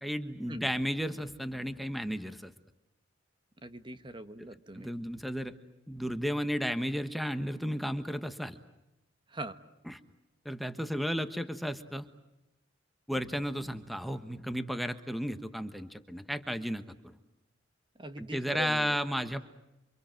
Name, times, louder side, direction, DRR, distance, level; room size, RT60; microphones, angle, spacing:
voice 1, 0.0-2.5 4.7-5.5 5.9-8.6 9.9-10.0 10.4-12.1 13.1-17.1 18.2-19.4, equal, ahead, 8 dB, 1.3 m, -33 dB
voice 2, 3.6-4.9 9.3-9.6 18.0-19.0, right 1 dB, 25° right, 10 dB, 1.3 m, -41 dB
29.0 x 26.0 x 7.6 m, 0.93 s
head